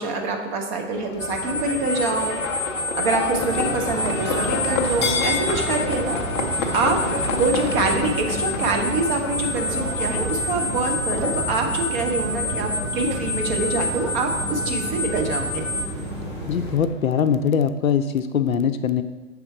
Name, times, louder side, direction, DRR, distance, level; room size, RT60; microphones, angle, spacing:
voice 1, 0.0-2.4 2.9-6.2 6.7-7.1 7.3-15.6, right 3 dB, 35° right, 3 dB, 0.9 m, -25 dB
Livestock farm animals working animals, 0.9-17.4, left 4 dB, 25° left, 0.3 m, -31 dB
sound 1, 1.2-15.9, left 1 dB, 5° left, 0.7 m, -29 dB
sound 2, 3.3-16.8, right 2 dB, 15° right, 1.1 m, -32 dB
voice 2, 16.5-19.0, left 7 dB, 90° left, 10 dB, 0.5 m, -22 dB
6.5 x 3.6 x 4.7 m, 1.2 s
figure-of-eight pair, 115°, 40 cm